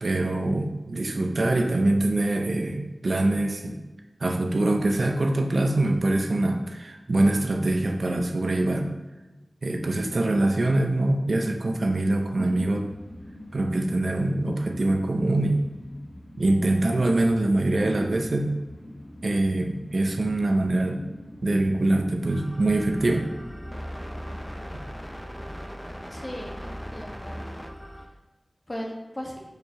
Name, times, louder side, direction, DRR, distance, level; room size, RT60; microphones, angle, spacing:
voice 1, 0.0-3.8 4.2-8.9 9.6-12.9 13.5-15.7 16.4-18.6 19.2-21.0 21.4-23.3, right 2 dB, 80° right, 3 dB, 0.7 m, -24 dB
sound 1, 12.9-25.2, left 1 dB, 70° left, 1.5 m, -45 dB
sound 2, 22.3-28.1, equal, 5° left, 0.7 m, -38 dB
voice 2, 26.1-27.4 28.7-29.4, equal, 35° left, -1 dB, 1.5 m, -37 dB
4.9 x 4.6 x 5.7 m, 1.1 s
wide cardioid pair, 55°, 0 cm